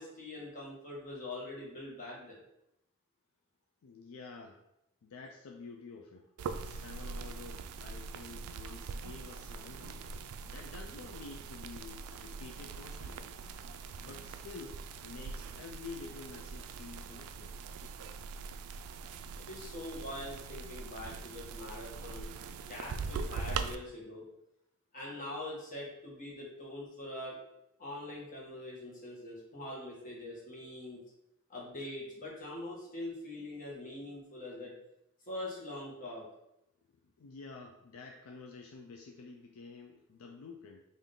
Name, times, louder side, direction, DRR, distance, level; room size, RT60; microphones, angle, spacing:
voice 1, 0.0-2.4 19.4-22.3 22.6-24.2 24.9-27.4 27.8-31.0 31.5-34.7 35.3-36.2, left 1 dB, 40° left, -4 dB, 1.3 m, -43 dB
voice 2, 3.8-4.6 5.0-6.3 6.6-10.0 10.5-13.3 14.0-17.5 37.2-40.8, left 4 dB, 70° left, 2 dB, 0.4 m, -49 dB
sound 1, 6.4-23.8, right 5 dB, 80° right, 0.3 m, -42 dB
3.6 x 2.6 x 3.7 m, 0.82 s
head